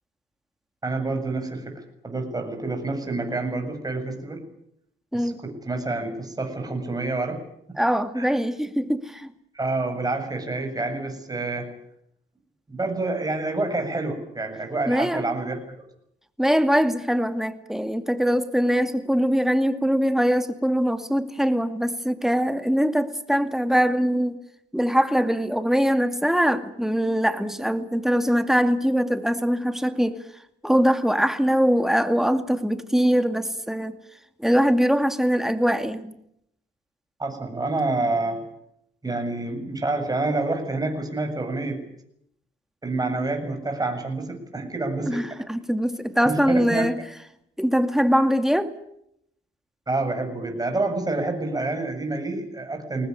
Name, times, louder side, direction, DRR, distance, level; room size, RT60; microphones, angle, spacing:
voice 1, 0.8-4.4 5.1-7.4 8.2-8.3 9.5-11.7 12.7-15.8 37.2-38.4 39.0-41.8 42.8-45.2 46.3-46.9 49.9-53.1, right 2 dB, 20° right, 4 dB, 7.5 m, -28 dB
voice 2, 7.8-9.3 14.9-15.3 16.4-24.4 24.7-30.2 30.6-34.0 34.4-36.1 45.1-47.0 47.6-48.7, equal, ahead, 8 dB, 2.4 m, -22 dB
22.5 x 19.0 x 9.8 m, 0.75 s
cardioid pair, 90°, 20 cm